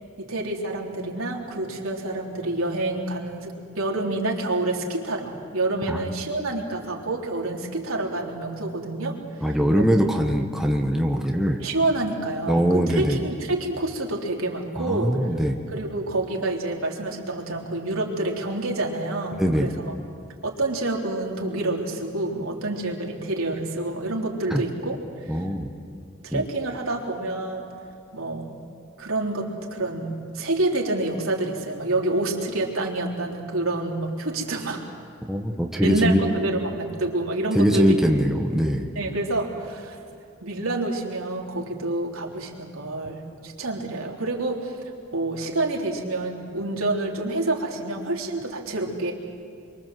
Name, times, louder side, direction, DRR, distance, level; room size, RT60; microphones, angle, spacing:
voice 1, 0.2-9.2 9.7-9.8 11.6-15.2 15.7-19.9 20.4-25.0 25.2-25.5 26.2-27.7 28.1-28.6 29.0-34.8 35.8-38.0 39.0-40.0 40.4-44.8 45.1-49.1, right 2 dB, 80° right, -1 dB, 3.6 m, -28 dB
voice 2, 9.4-11.6 12.5-13.2 14.8-15.6 19.4-19.7 24.5-24.6 25.3-25.7 26.3-26.4 35.3-36.2 37.5-38.9, equal, ahead, 1 dB, 1.3 m, -22 dB
26.5 x 24.0 x 7.7 m, 2.5 s
head